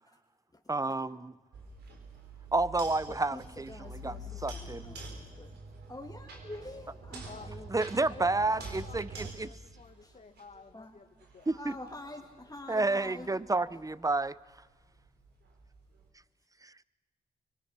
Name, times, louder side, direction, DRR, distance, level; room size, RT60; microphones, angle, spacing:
voice 1, 0.7-1.3 2.5-4.2 4.4-4.9 7.7-9.5 11.5-11.7 12.7-14.4 16.6-16.7, right 2 dB, 20° right, 1.0 m, -30 dB
sound 1, 1.5-10.7 11.2-16.1, equal, 80° right, 4.1 m, -48 dB
sound 2, 2.0-9.3, right 4 dB, 60° right, 2.3 m, -49 dB
voice 2, 3.1-3.4 3.7-5.6 5.9-7.9 10.0-10.2 10.7-11.0 11.6-13.4, left 2 dB, 20° left, 2.9 m, -46 dB
voice 3, 8.1-11.1 11.3-11.5, left 4 dB, 45° left, 1.7 m, -50 dB
25.0 x 23.0 x 6.0 m
supercardioid pair, 40°, 17 cm